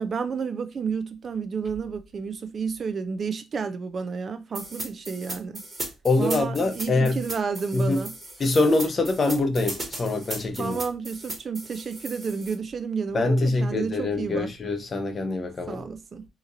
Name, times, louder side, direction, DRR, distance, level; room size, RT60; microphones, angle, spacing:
voice 1, 0.0-5.6 6.2-8.1 9.3-9.4 10.6-14.5 15.7-16.3, right 5 dB, 45° right, 0.4 m, -31 dB
sound 1, 4.5-12.5, right 2 dB, 25° right, 1.3 m, -37 dB
voice 2, 6.0-7.2 7.7-8.0 8.4-10.8 13.1-15.8, left 2 dB, 40° left, 0.7 m, -24 dB
2.8 x 2.5 x 3.8 m
cardioid pair, 90°, 0 cm